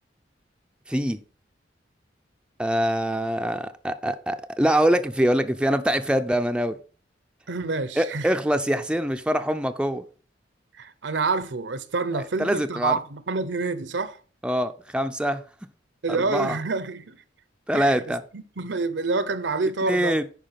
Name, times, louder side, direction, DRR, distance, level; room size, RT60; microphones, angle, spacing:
voice 1, 0.9-1.2 2.6-6.8 8.0-10.0 12.1-13.0 14.4-15.4 16.1-16.6 17.7-18.2 19.9-20.2, equal, 5° right, 0.5 m, -24 dB
voice 2, 7.5-8.3 10.7-14.2 16.0-17.2 17.7-20.2, right 3 dB, 75° right, 0.9 m, -28 dB
10.5 x 4.8 x 5.8 m
head